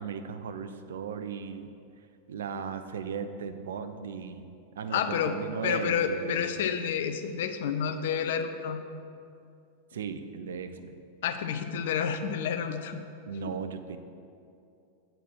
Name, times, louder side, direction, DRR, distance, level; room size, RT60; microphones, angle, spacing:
voice 1, 0.0-1.7 2.3-4.5 4.8-6.6 9.9-11.0 13.3-14.0, right 6 dB, 60° right, 10 dB, 0.5 m, -36 dB
voice 2, 4.9-5.3 5.6-8.8 11.2-13.0, left 7 dB, 55° left, 7 dB, 0.5 m, -29 dB
7.7 x 4.9 x 6.3 m, 2.5 s
figure-of-eight pair, 90°, 0 cm